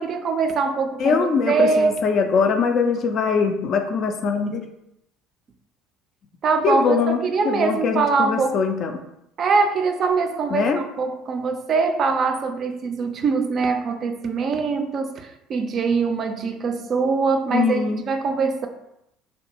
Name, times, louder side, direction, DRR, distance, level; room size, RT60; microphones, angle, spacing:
voice 1, 0.0-2.0 6.4-8.6 9.4-18.7, right 4 dB, 45° right, 5 dB, 0.3 m, -23 dB
voice 2, 1.0-4.6 6.6-7.2 7.4-8.9 10.5-10.8 17.5-18.0, left 5 dB, 45° left, 6 dB, 0.3 m, -22 dB
2.5 x 2.2 x 2.7 m, 0.82 s
figure-of-eight pair, 60°, 0 cm